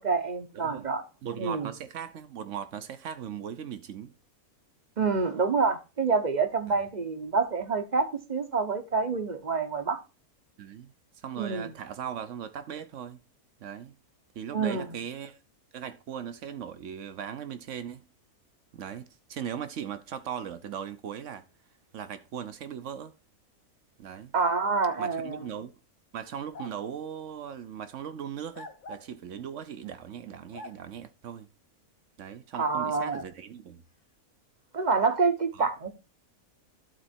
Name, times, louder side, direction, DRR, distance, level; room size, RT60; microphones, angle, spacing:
voice 1, 0.0-1.0 1.4-1.7 5.0-10.0 11.4-11.7 14.5-15.0 24.3-25.4 32.6-33.2 34.7-35.9, right 4 dB, 35° right, 0.8 m, -27 dB
voice 2, 0.5-0.9 1.2-4.1 6.7-6.8 10.6-13.2 13.6-14.0 14.3-15.4 15.7-18.0 18.7-21.4 21.9-23.1 24.0-24.3 25.0-25.7 26.1-31.5 32.2-33.8 35.5-35.7, right 8 dB, 60° right, 1.0 m, -39 dB
sound 1, 24.4-24.9 26.5-26.8 28.5-29.1 30.5-30.8 33.1-33.3, left 2 dB, 40° left, 0.9 m, -43 dB
12.0 x 4.0 x 4.3 m
omnidirectional pair, 1.6 m